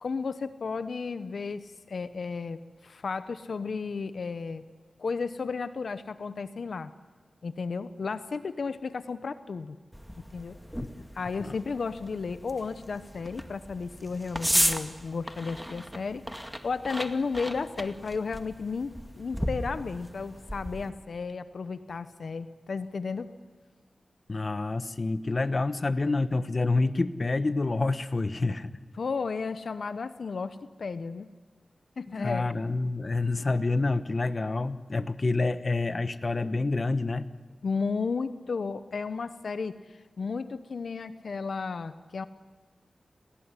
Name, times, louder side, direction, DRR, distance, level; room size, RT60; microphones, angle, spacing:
voice 1, 0.0-4.6 5.0-6.9 7.4-9.8 10.3-10.6 11.1-23.3 29.0-31.3 32.0-32.5 37.6-42.3, left 4 dB, 75° left, 12 dB, 0.9 m, -33 dB
sound 1, 9.9-20.9, equal, ahead, 2.0 m, -35 dB
voice 2, 24.3-28.7 32.1-37.3, left 3 dB, 45° left, 13 dB, 1.1 m, -28 dB
29.5 x 19.0 x 9.9 m, 1.4 s
cardioid pair, 60°, 0 cm